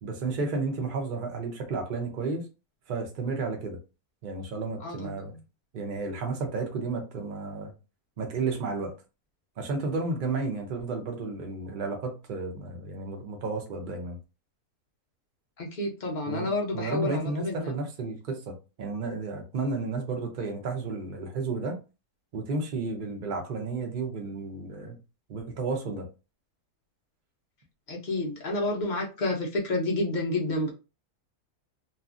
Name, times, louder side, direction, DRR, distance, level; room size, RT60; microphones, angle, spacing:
voice 1, 0.0-2.5 2.9-3.8 4.2-5.3 5.7-7.7 8.2-8.9 9.6-14.2 16.3-18.5 18.8-21.8 22.3-25.0 25.3-26.0, right 3 dB, 45° right, 0.7 m, -32 dB
voice 2, 15.6-17.6 27.9-30.7, left 2 dB, 70° left, 0.4 m, -29 dB
2.8 x 2.4 x 2.4 m
omnidirectional pair, 1.6 m